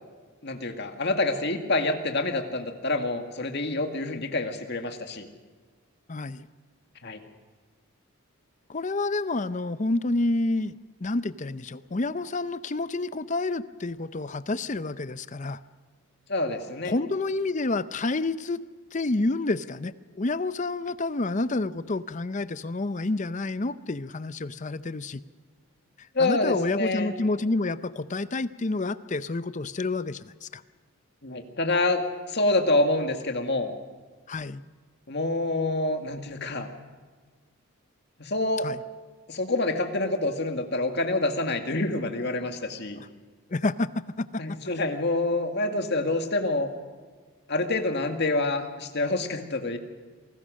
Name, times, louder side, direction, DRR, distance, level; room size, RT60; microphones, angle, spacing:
voice 1, 0.4-5.3 7.0-7.2 16.3-17.0 26.1-27.1 31.2-32.0 32.3-33.7 35.1-36.7 38.2-38.7 39.3-43.0 44.4-46.7 47.5-49.8, left 2 dB, 50° left, 5 dB, 2.1 m, -27 dB
voice 2, 6.1-6.5 8.7-15.6 16.8-18.6 18.9-25.2 26.2-30.6 34.3-34.6 38.6-38.8 43.0-43.1 43.5-44.6, left 2 dB, 35° left, 14 dB, 0.6 m, -29 dB
27.5 x 19.0 x 6.4 m, 1.5 s
head